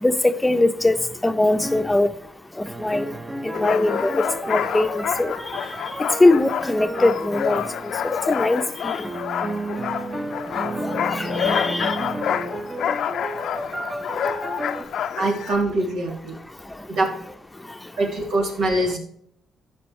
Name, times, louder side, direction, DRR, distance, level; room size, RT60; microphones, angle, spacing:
voice 1, 0.0-2.1 2.6-3.1 3.4-5.4 6.2-7.6 8.0-9.1 11.1-12.0, left 2 dB, 10° left, 9 dB, 0.8 m, -21 dB
sound 1, 1.6-2.0 2.6-8.6 9.0-14.8, right 2 dB, 15° right, 0.9 m, -32 dB
sound 2, 3.5-15.6, left 9 dB, 70° left, 0.6 m, -28 dB
voice 2, 15.2-16.3 16.9-17.1 18.0-19.0, right 2 dB, 75° right, 0 dB, 3.3 m, -23 dB
14.5 x 5.5 x 3.2 m, 0.70 s
cardioid pair, 90°, 0 cm